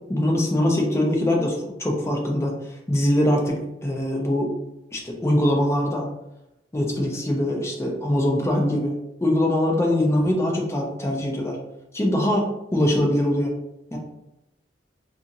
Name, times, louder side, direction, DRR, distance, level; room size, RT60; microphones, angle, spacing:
voice 1, 0.1-2.5 2.9-4.5 4.9-6.1 6.7-11.6 11.9-13.5 13.9-14.0, left 1 dB, 15° left, 1 dB, 0.4 m, -22 dB
2.8 x 2.5 x 2.6 m, 0.89 s
head